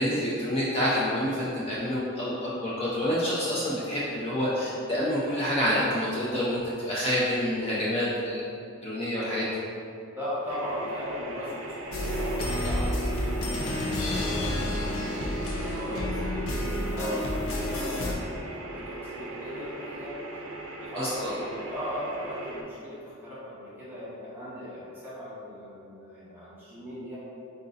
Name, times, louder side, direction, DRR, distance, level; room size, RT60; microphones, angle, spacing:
voice 1, 0.0-8.4 8.8-9.5 21.0-21.3, equal, 30° left, -7 dB, 0.5 m, -28 dB
voice 2, 10.1-15.1 15.5-20.4 20.8-27.2, left 1 dB, 10° right, -10 dB, 1.2 m, -38 dB
sound 1, 10.5-22.6, right 2 dB, 70° right, 0.5 m, -40 dB
sound 2, 11.9-18.1, left 1 dB, 70° left, 0.6 m, -30 dB
3.8 x 2.6 x 4.0 m, 2.6 s
head